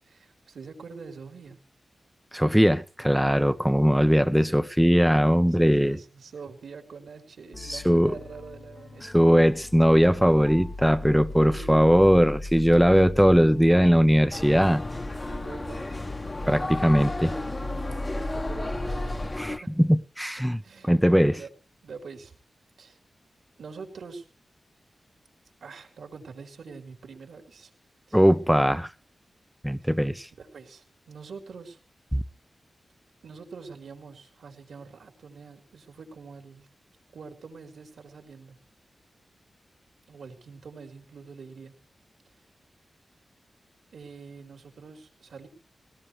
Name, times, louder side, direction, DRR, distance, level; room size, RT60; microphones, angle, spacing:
voice 1, 0.0-1.6 5.6-9.5 11.4-12.1 12.5-13.0 15.2-15.9 18.1-19.8 20.6-21.0 21.2-21.5 21.8-22.3 22.8-23.0 23.6-24.2 25.6-27.7 28.1-28.2 29.8-29.9 30.4-31.8 33.2-36.7 37.1-38.6 40.1-41.8 43.9-45.5, right 5 dB, 90° right, 4.5 m, -44 dB
voice 2, 2.3-6.0 7.7-8.1 9.0-14.8 16.5-17.4 19.4-19.5 19.8-21.4 28.1-28.9 29.6-30.3 32.1-32.2, equal, ahead, 0.8 m, -20 dB
sound 1, 7.5-19.3, left 2 dB, 45° left, 1.2 m, -39 dB
sound 2, 14.3-19.6, left 2 dB, 25° left, 1.2 m, -33 dB
21.0 x 18.0 x 3.3 m
wide cardioid pair, 85°, 0 cm